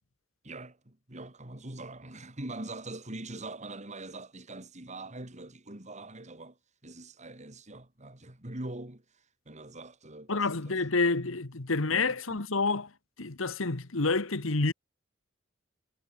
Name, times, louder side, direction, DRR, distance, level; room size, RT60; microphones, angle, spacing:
voice 1, 0.4-10.8 11.9-12.4, right 2 dB, 35° right, 3.0 m, -43 dB
voice 2, 10.3-12.9 13.2-14.7, left 3 dB, 80° left, 1.6 m, -28 dB
head